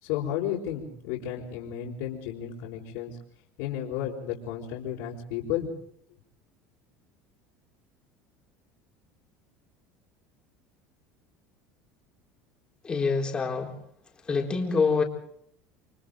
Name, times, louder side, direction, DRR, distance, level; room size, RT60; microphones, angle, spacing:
voice 1, 0.0-3.2 3.6-5.7, left 10 dB, 75° left, -4 dB, 4.8 m, -33 dB
voice 2, 12.8-13.7 14.3-15.0, left 4 dB, 20° left, 1 dB, 4.2 m, -25 dB
30.0 x 24.0 x 3.9 m, 0.68 s
supercardioid pair, 130°, 5 cm